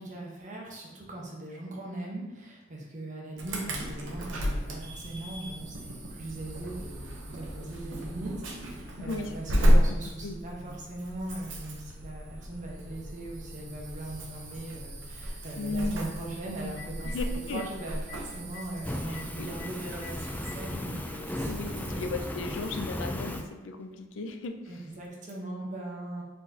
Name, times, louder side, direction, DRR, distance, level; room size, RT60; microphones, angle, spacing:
voice 1, 0.0-22.1 24.7-26.2, right 2 dB, 40° right, -2 dB, 0.9 m, -40 dB
Insect / Alarm, 3.4-22.8, equal, 90° right, 0.8 m, -33 dB
voice 2, 9.0-9.3 9.7-10.0 10.2-10.3 15.6-16.0 17.0-17.7 19.1-19.5 21.3-24.6, left 3 dB, 85° left, 6 dB, 0.4 m, -36 dB
Telephone, 14.0-14.1 16.2-16.3 16.6-17.2 17.6-17.7 18.1-18.2 18.5-18.6 19.1-19.2 19.6-19.7 20.0-20.6 21.6-21.7 23.1-23.2, left 7 dB, 65° left, 1.0 m, -46 dB
Fire, 18.8-23.4, left 1 dB, 10° left, 0.3 m, -36 dB
4.1 x 4.0 x 2.8 m, 1.1 s
head